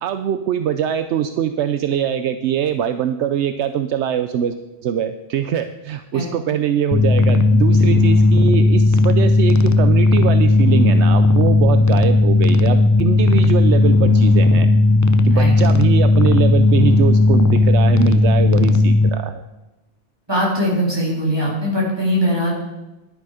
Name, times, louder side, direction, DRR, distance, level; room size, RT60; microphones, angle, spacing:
voice 1, 0.0-4.6 4.8-14.7 15.2-19.4, right 9 dB, 75° right, 10 dB, 0.9 m, -22 dB
sound 1, 6.9-19.1, left 2 dB, 25° left, 0.4 m, -14 dB
voice 2, 20.3-22.5, equal, 20° right, -5 dB, 3.8 m, -20 dB
11.0 x 10.0 x 4.9 m, 1.0 s
omnidirectional pair, 1.2 m